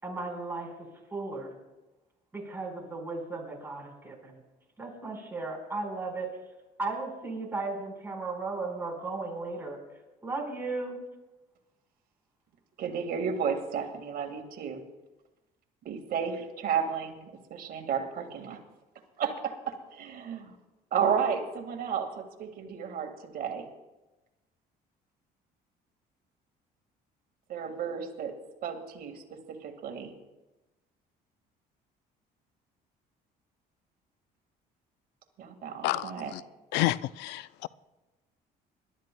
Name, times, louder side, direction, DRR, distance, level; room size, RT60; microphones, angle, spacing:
voice 1, 0.0-0.7 1.1-1.5 2.3-4.4 4.8-6.3 6.8-9.8 10.2-11.0, right 3 dB, 15° right, -1 dB, 4.5 m, -35 dB
voice 2, 12.8-14.8 15.9-18.6 19.2-20.5 20.9-23.6 27.5-28.3 28.6-29.2 29.5-30.1 35.4-36.3, right 7 dB, 60° right, 4 dB, 1.8 m, -32 dB
voice 3, 35.8-36.4 36.7-37.7, left 16 dB, 90° left, 18 dB, 0.4 m, -30 dB
27.0 x 12.5 x 2.2 m, 1.1 s
cardioid pair, 110°, 17 cm